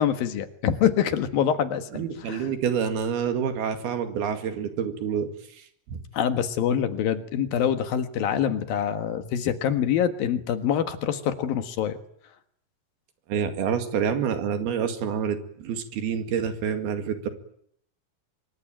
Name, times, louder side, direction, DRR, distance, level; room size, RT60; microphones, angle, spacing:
voice 1, 0.0-2.5 6.1-12.0, left 9 dB, 70° left, 9 dB, 3.2 m, -25 dB
voice 2, 1.9-5.3 5.9-6.0 13.3-17.3, right 7 dB, 75° right, 8 dB, 4.1 m, -27 dB
25.0 x 23.0 x 9.0 m, 0.68 s
omnidirectional pair, 4.5 m